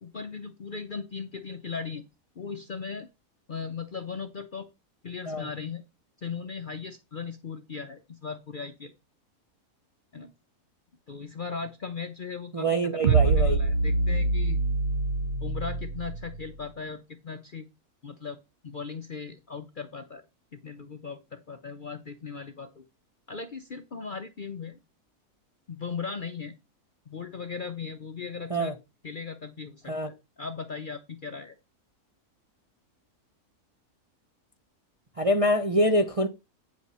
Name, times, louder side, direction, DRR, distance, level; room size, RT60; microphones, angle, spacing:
voice 1, 0.0-2.0 2.4-3.1 3.5-4.7 5.0-5.8 6.2-8.9 10.1-10.3 11.1-14.6 15.4-17.7 18.0-20.2 20.6-22.8 23.3-24.8 25.7-26.5 27.1-28.7 29.0-31.6, left 5 dB, 50° left, 0.6 m, -38 dB
voice 2, 12.5-13.6 28.5-28.7 29.9-30.1 35.2-36.3, equal, 35° right, 0.5 m, -25 dB
sound 1, 13.0-16.5, right 3 dB, 55° right, 0.9 m, -25 dB
9.6 x 6.0 x 4.2 m
omnidirectional pair, 1.6 m